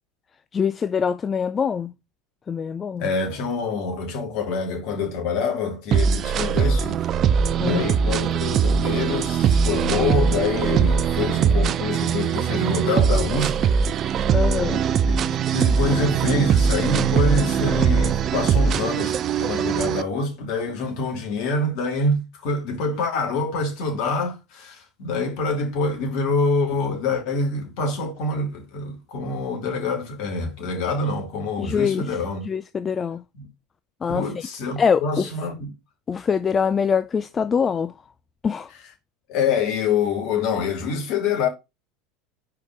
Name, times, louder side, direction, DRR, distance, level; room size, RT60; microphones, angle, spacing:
voice 1, 0.5-1.9 2.5-3.1 7.6-7.9 14.3-14.8 31.6-32.1 32.5-33.2 34.0-34.3 34.8-35.2 36.1-37.9 38.4-38.7, left 6 dB, 30° left, 0.4 m, -23 dB
voice 2, 3.0-7.1 7.6-13.6 15.0-32.5 33.3-33.5 34.1-35.7 39.3-41.5, left 3 dB, 55° left, 2.8 m, -26 dB
sound 1, 5.9-20.0, right 7 dB, 40° right, 0.5 m, -21 dB
5.0 x 4.7 x 5.4 m
hypercardioid pair, 80°, 0 cm